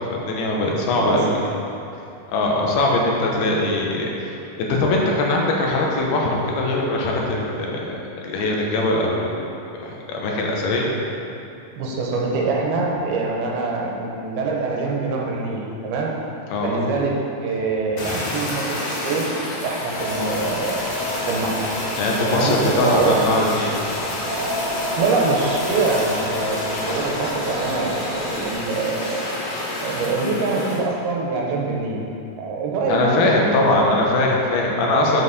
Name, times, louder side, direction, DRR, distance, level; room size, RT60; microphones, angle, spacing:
voice 1, 0.1-1.3 2.3-10.9 16.5-16.8 22.0-23.7 32.9-35.2, left 2 dB, 80° left, -1 dB, 2.8 m, -21 dB
voice 2, 0.9-1.4 11.8-16.1 16.6-17.1 17.4-19.3 19.6-20.8 21.3-21.8 22.3-23.2 25.0-29.3 29.8-32.0 32.4-33.9, right 3 dB, 85° right, -2 dB, 2.9 m, -24 dB
Fire, 18.0-30.8, left 1 dB, 60° left, 2.4 m, -29 dB
sound 1, 19.9-28.5, equal, 55° right, 2.5 m, -30 dB
7.7 x 7.7 x 4.1 m, 2.7 s
omnidirectional pair, 4.4 m